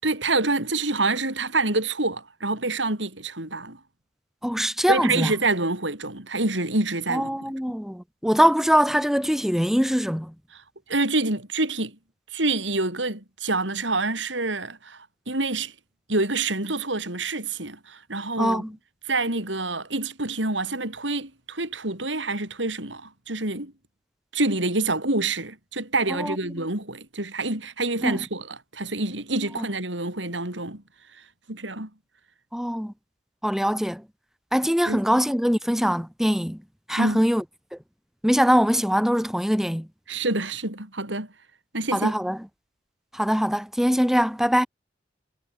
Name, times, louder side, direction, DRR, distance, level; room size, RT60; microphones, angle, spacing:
voice 1, 0.0-3.8 4.9-7.4 10.5-10.6 10.9-12.0 12.3-15.7 16.1-18.6 19.1-23.7 24.3-30.8 31.5-31.9 34.9-35.0 37.0-37.2 40.1-41.3 41.7-42.1, right 2 dB, 80° right, 7.7 m, -27 dB
voice 2, 4.4-5.3 7.1-10.3 18.4-18.7 26.2-26.4 28.0-28.2 29.6-29.7 32.5-32.9 33.4-34.0 34.5-36.6 36.9-37.4 38.2-39.9 41.9-42.4 43.1-44.7, equal, ahead, 6.6 m, -22 dB
head